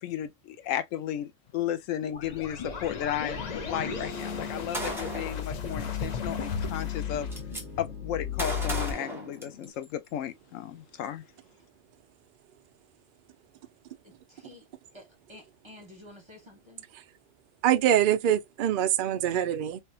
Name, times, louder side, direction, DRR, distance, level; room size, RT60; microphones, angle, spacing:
voice 1, 0.0-7.3 7.8-11.2, left 10 dB, 80° left, 1.0 m, -34 dB
sound 1, 2.0-8.9, left 7 dB, 45° left, 0.6 m, -35 dB
sound 2, 3.3-9.7, left 5 dB, 60° left, 1.8 m, -41 dB
Gunshot gunfire, 4.7-5.4 6.5-6.6 6.9-7.6 8.4-9.9, right 1 dB, ahead, 1.0 m, -35 dB
voice 2, 14.3-14.6 14.9-16.8, left 1 dB, 20° right, 1.3 m, -50 dB
voice 3, 17.6-19.8, right 11 dB, 65° right, 0.5 m, -24 dB
3.4 x 2.8 x 2.7 m
omnidirectional pair, 1.3 m